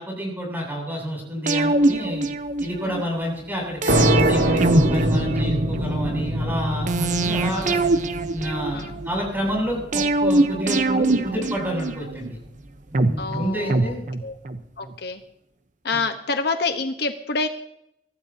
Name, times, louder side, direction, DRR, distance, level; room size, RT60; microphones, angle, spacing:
voice 1, 0.0-2.3 2.6-7.8 8.3-8.8 9.0-12.4 12.9-14.1, equal, 10° right, -1 dB, 7.8 m, -29 dB
sound 1, 1.5-3.0 3.8-5.9 6.9-9.1 9.9-12.3 12.9-14.6 14.9-15.0, right 2 dB, 45° right, 0.9 m, -23 dB
sound 2, 3.9-11.3, right 1 dB, 80° right, 2.2 m, -24 dB
voice 2, 13.2-14.0 14.2-14.4 14.8-15.2 15.8-17.5, left 4 dB, 65° left, 6 dB, 1.2 m, -27 dB
24.0 x 15.5 x 2.9 m, 0.78 s
head